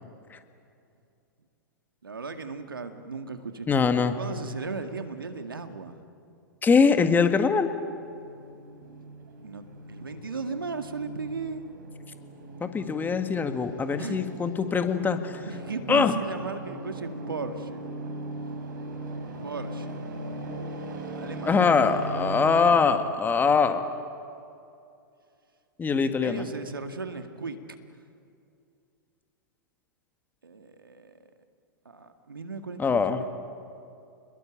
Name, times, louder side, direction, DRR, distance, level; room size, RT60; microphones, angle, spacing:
voice 1, 2.0-3.7 4.2-6.0 9.4-11.6 14.0-14.2 15.4-17.9 19.4-19.9 21.1-22.1 26.0-27.6 30.4-31.2 31.9-33.2, right 4 dB, 85° right, 7 dB, 2.0 m, -36 dB
voice 2, 3.7-4.2 6.6-7.7 12.6-15.4 15.9-16.1 21.5-23.8 25.8-26.4 32.8-33.2, left 5 dB, 15° left, 8 dB, 1.8 m, -23 dB
sound 1, 8.0-22.9, right 2 dB, 65° right, 4.7 m, -39 dB
29.0 x 21.5 x 8.9 m, 2.5 s
hypercardioid pair, 105°, 11 cm